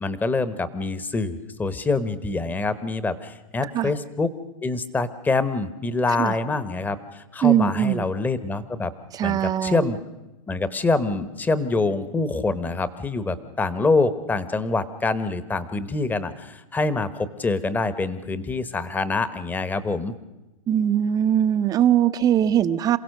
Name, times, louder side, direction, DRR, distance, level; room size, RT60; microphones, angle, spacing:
voice 1, 0.0-4.3 4.6-8.9 9.2-10.0 10.5-20.1, left 3 dB, 10° left, 14 dB, 1.0 m, -25 dB
voice 2, 7.4-8.1 9.1-9.9 20.7-23.0, right 10 dB, 20° right, 13 dB, 0.7 m, -21 dB
27.5 x 16.0 x 6.5 m, 1.0 s
hypercardioid pair, 140°, 17 cm